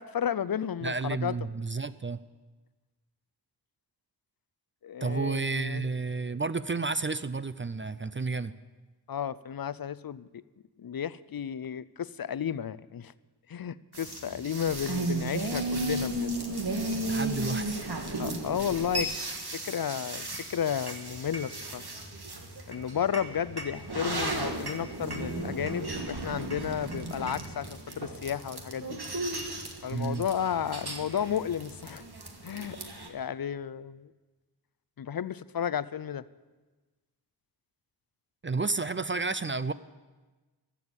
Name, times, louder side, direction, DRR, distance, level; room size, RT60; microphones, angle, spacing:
voice 1, 0.0-1.3 4.8-5.9 9.1-10.4 10.8-13.1 13.5-16.4 18.2-19.1 19.6-21.8 22.7-29.0 29.8-32.0 32.4-32.8 33.1-34.1 35.0-36.2, left 8 dB, 60° left, 17 dB, 0.5 m, -33 dB
voice 2, 0.8-2.2 5.0-8.5 17.1-17.9 29.9-30.3 38.4-39.7, right 3 dB, 30° right, 14 dB, 0.4 m, -31 dB
sound 1, 13.9-33.1, right 2 dB, 70° right, 1.6 m, -35 dB
14.5 x 7.1 x 8.7 m, 1.3 s
wide cardioid pair, 45°, 41 cm